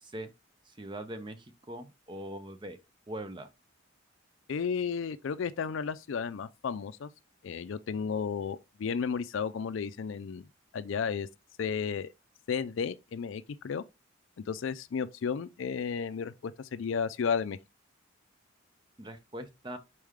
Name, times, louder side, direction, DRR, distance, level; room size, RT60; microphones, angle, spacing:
voice 1, 0.0-0.3 0.7-2.8 3.1-3.5 19.0-19.8, right 1 dB, 25° right, 0.5 m, -41 dB
voice 2, 4.5-7.1 7.4-10.4 10.7-11.3 11.6-12.1 12.5-13.8 14.5-17.6, left 6 dB, 70° left, 0.4 m, -33 dB
4.5 x 3.2 x 3.5 m
head